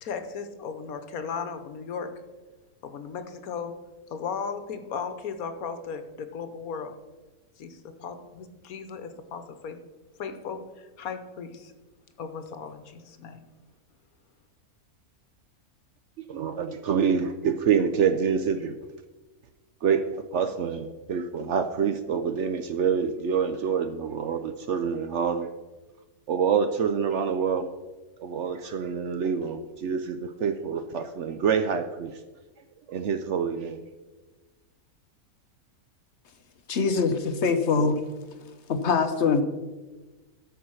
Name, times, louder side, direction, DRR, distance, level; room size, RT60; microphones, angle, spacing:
voice 1, 0.0-2.1 2.8-3.7 4.1-6.9 7.6-9.8 10.2-11.7 12.2-13.4, left 6 dB, 70° left, 9 dB, 1.3 m, -36 dB
voice 2, 16.3-18.7 19.8-25.5 26.3-27.7 28.2-32.2 32.9-33.8, right 6 dB, 65° right, 9 dB, 0.8 m, -26 dB
voice 3, 36.7-38.1 38.7-39.4, left 5 dB, 55° left, 8 dB, 0.9 m, -23 dB
13.0 x 4.7 x 6.3 m, 1.2 s
omnidirectional pair, 1.6 m